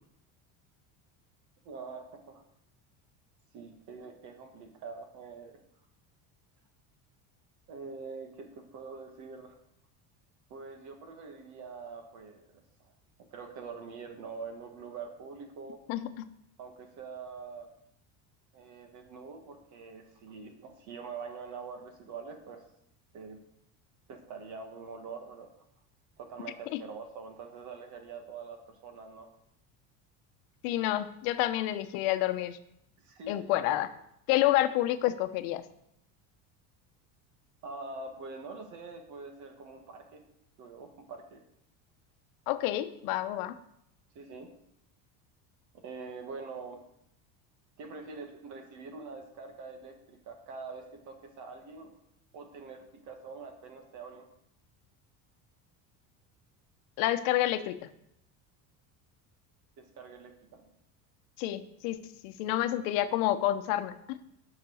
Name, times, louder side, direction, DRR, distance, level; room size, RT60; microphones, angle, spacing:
voice 1, 1.6-2.4 3.5-5.6 7.7-9.6 10.5-12.9 13.2-15.8 16.6-17.7 18.5-22.6 23.1-23.4 24.1-25.5 26.2-29.3 33.0-33.8 37.6-40.2 40.6-41.4 44.1-44.5 45.7-46.8 47.8-51.9 52.3-54.2 59.8-60.6, right 4 dB, 45° right, 5 dB, 1.6 m, -44 dB
voice 2, 15.9-16.3 30.6-32.6 33.3-33.9 34.3-35.6 42.5-43.6 57.0-57.9 61.4-62.0 62.2-64.2, left 14 dB, 85° left, 11 dB, 0.9 m, -29 dB
9.7 x 5.9 x 6.3 m, 0.77 s
cardioid pair, 175°, 40 cm